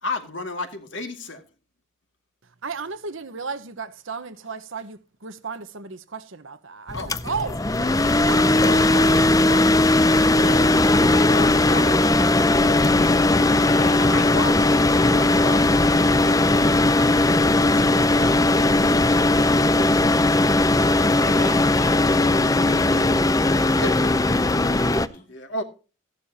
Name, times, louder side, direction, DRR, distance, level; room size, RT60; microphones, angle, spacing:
voice 1, 0.0-1.4 6.9-7.4 9.5-12.2 12.5-15.9 19.0-19.2 22.3-22.4 23.5-25.0 25.3-25.6, left 2 dB, 55° left, 2.3 m, -35 dB
voice 2, 2.6-7.9 8.2-9.2, right 4 dB, 65° right, 1.2 m, -34 dB
sound 1, 6.9-25.1, left 2 dB, 15° left, 0.5 m, -18 dB
voice 3, 13.4-14.1 21.2-23.2 24.7-25.3, left 2 dB, 40° left, 3.5 m, -38 dB
15.0 x 11.5 x 2.8 m
head